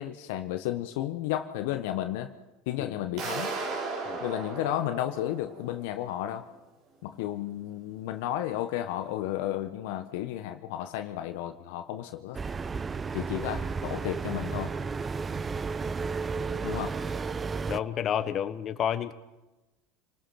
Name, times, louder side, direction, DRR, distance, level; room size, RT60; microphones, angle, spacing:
voice 1, 0.0-2.3 2.7-3.6 4.2-6.4 7.0-12.4 13.1-14.7 16.6-17.0, left 12 dB, 65° left, 8 dB, 1.2 m, -33 dB
sound 1, 3.2-6.0, right 3 dB, 55° right, 4.6 m, -36 dB
sound 2, 12.3-17.8, right 5 dB, 25° right, 0.7 m, -33 dB
voice 2, 17.7-19.1, left 9 dB, 40° left, 10 dB, 1.3 m, -30 dB
28.5 x 19.5 x 5.9 m, 1.0 s
hypercardioid pair, 75°, 0 cm